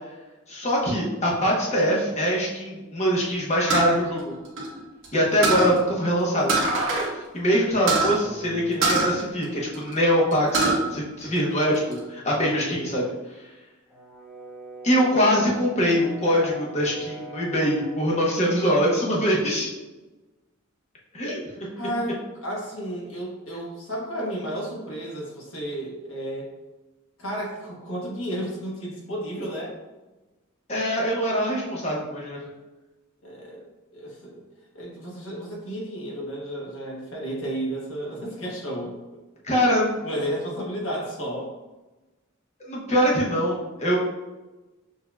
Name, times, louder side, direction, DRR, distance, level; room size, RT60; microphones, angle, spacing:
voice 1, 0.5-4.3 5.1-6.6 7.3-13.1 14.8-19.7 21.1-21.4 30.7-32.5 39.4-39.9 42.7-44.0, equal, 30° left, -3 dB, 1.0 m, -23 dB
sound 1, 3.7-5.1 5.4-5.8 6.5-7.1 7.4-7.5 7.9-8.1 8.8-9.9 10.3-10.8 11.2-12.0, right 3 dB, 60° right, 1.2 m, -23 dB
voice 2, 5.4-5.8 8.0-9.2 12.6-13.0 21.7-26.5 27.2-29.8 33.2-33.7 33.9-34.4 34.7-39.0 40.0-41.5, equal, 70° left, -3 dB, 1.4 m, -33 dB
Brass instrument, 13.9-18.1, equal, 5° right, 1.2 m, -42 dB
6.5 x 2.8 x 2.3 m, 1.1 s
head